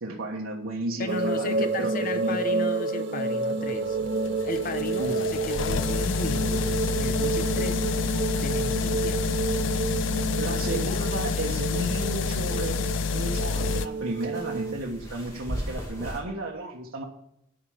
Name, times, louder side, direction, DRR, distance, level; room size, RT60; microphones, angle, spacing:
voice 1, 0.0-2.4 5.0-5.2 10.4-17.0, right 2 dB, 90° right, -1 dB, 1.4 m, -33 dB
voice 2, 1.0-4.1 4.4-7.9 8.4-9.7, left 2 dB, 40° left, 9 dB, 0.9 m, -35 dB
sound 1, 1.1-14.8, right 3 dB, 55° right, 0.6 m, -29 dB
sound 2, 3.5-13.9, left 5 dB, 65° left, 0.5 m, -29 dB
sound 3, 10.9-16.2, equal, 15° left, 2.3 m, -40 dB
11.0 x 5.0 x 7.3 m, 0.75 s
head